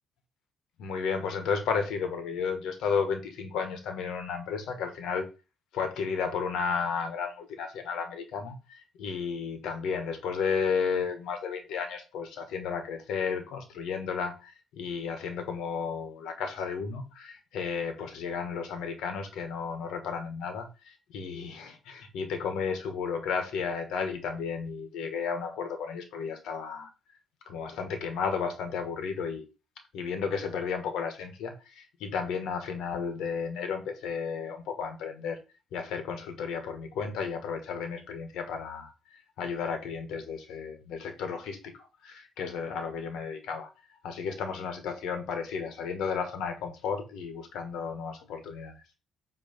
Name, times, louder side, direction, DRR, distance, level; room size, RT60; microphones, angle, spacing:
voice 1, 0.8-5.3 5.7-26.9 27.5-29.4 29.9-35.4 35.7-38.9 39.4-43.7 44.0-48.8, left 6 dB, 80° left, 1.7 m, -33 dB
8.4 x 3.4 x 5.3 m
cardioid pair, 170°, 0 cm